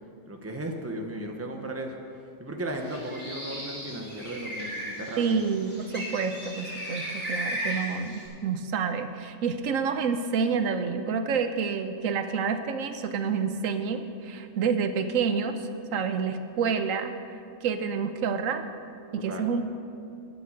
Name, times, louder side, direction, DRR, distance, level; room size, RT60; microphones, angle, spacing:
voice 1, 0.3-2.0 2.4-5.4 19.3-19.5, right 1 dB, 10° right, 2 dB, 0.9 m, -35 dB
Bird, 2.7-8.3, equal, 10° left, 3.6 m, -36 dB
voice 2, 5.2-17.1 17.6-18.6 19.1-19.6, right 6 dB, 90° right, 9 dB, 1.1 m, -28 dB
11.5 x 9.1 x 6.4 m, 2.4 s
omnidirectional pair, 1.3 m